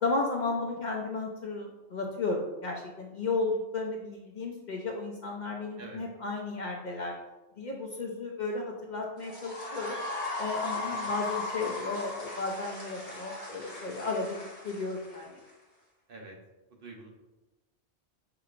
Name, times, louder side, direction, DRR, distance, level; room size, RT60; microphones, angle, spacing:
voice 1, 0.0-7.2 7.6-10.0 10.4-15.4, left 3 dB, 55° left, 0 dB, 0.5 m, -34 dB
voice 2, 5.8-6.0 11.0-11.1 16.1-16.4 16.8-17.1, right 3 dB, 60° right, 0 dB, 0.9 m, -45 dB
sound 1, 9.2-15.5, left 3 dB, 15° left, 1.3 m, -37 dB
5.8 x 3.0 x 2.5 m, 1.0 s
omnidirectional pair, 1.1 m